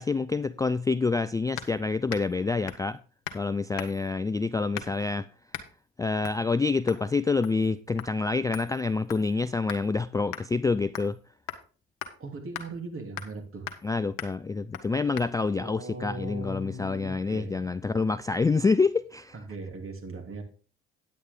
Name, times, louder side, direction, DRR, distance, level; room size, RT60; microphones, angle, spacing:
voice 1, 0.0-3.0 3.3-5.3 6.0-11.2 13.8-19.4, left 4 dB, 10° left, 0.3 m, -27 dB
sound 1, 1.6-1.8 2.1-2.4 2.7-2.9 3.2-3.4 3.8-4.1 4.7-5.1 5.5-5.7 6.2-6.4 6.9-7.1 7.4-7.7 8.0-8.1 8.5-9.9 10.3-10.5 11.0-11.2 11.5-11.6 12.0-12.1 12.5-12.7 13.2-13.4 13.7-13.9 14.2-14.4 14.7-14.9 15.2-15.3, left 10 dB, 80° left, 1.2 m, -39 dB
voice 2, 12.2-13.7 15.6-17.6 19.3-20.4, right 2 dB, 40° right, 3.0 m, -38 dB
9.5 x 8.5 x 3.7 m
hypercardioid pair, 60°, 32 cm